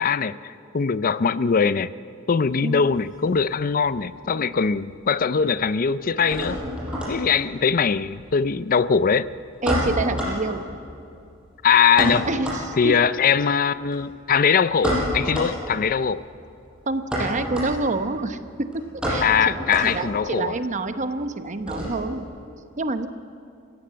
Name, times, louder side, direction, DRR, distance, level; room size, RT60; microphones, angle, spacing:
voice 1, 0.0-1.9 2.3-6.6 7.1-9.3 11.6-12.3 12.8-16.2 19.2-20.6, left 6 dB, 45° left, 15 dB, 0.5 m, -21 dB
sound 1, 2.4-4.0 4.3-5.0 5.2-22.3, equal, 5° right, 6.9 m, -30 dB
voice 2, 9.6-10.6 12.3-12.9 16.9-19.6 19.8-22.2 22.8-23.1, right 2 dB, 40° right, 9 dB, 1.0 m, -27 dB
28.0 x 16.0 x 7.6 m, 2.6 s
head